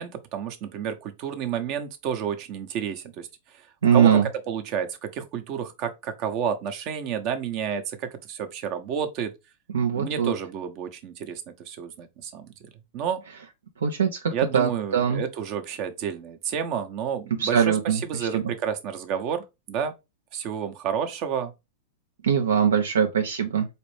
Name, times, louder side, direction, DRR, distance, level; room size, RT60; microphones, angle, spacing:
voice 1, 0.0-3.3 3.5-3.6 3.9-4.2 4.5-9.3 9.9-12.5 12.9-13.2 14.3-19.9 20.3-21.5, right 8 dB, 45° right, 0.7 m, -30 dB
voice 2, 3.8-4.3 9.7-10.3 13.8-15.2 17.4-18.4 22.2-23.7, right 7 dB, 85° right, 0.5 m, -22 dB
4.1 x 2.5 x 3.2 m
hypercardioid pair, 115°, 0 cm